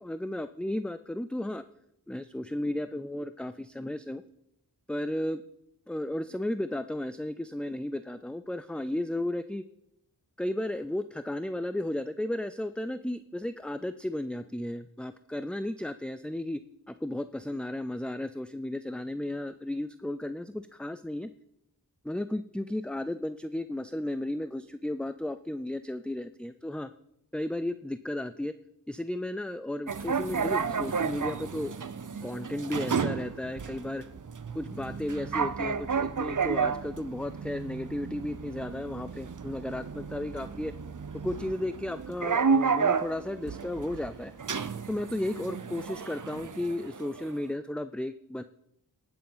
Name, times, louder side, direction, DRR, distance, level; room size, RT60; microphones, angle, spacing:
voice 1, 0.0-1.6 2.1-4.2 4.9-5.4 5.9-9.6 10.4-16.6 16.9-21.3 22.0-26.9 27.3-28.5 28.9-31.7 32.2-34.0 34.5-40.7 41.2-44.3 44.9-48.4, left 1 dB, 5° left, 11 dB, 0.4 m, -34 dB
sound 1, 29.9-47.4, right 5 dB, 50° right, 0.7 m, -32 dB
18.5 x 7.0 x 5.6 m, 0.80 s
wide cardioid pair, 55°, 40 cm